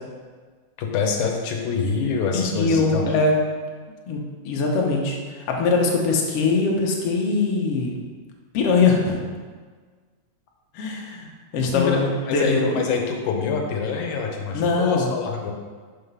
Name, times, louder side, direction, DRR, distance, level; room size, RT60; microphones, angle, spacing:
voice 1, 0.8-3.1 11.7-15.5, left 5 dB, 90° left, 1 dB, 2.3 m, -25 dB
voice 2, 2.3-3.3 4.1-7.9 8.5-9.2 10.7-12.8 14.5-15.1, left 3 dB, 65° left, -1 dB, 1.7 m, -22 dB
5.8 x 5.1 x 5.5 m, 1.5 s
omnidirectional pair, 3.4 m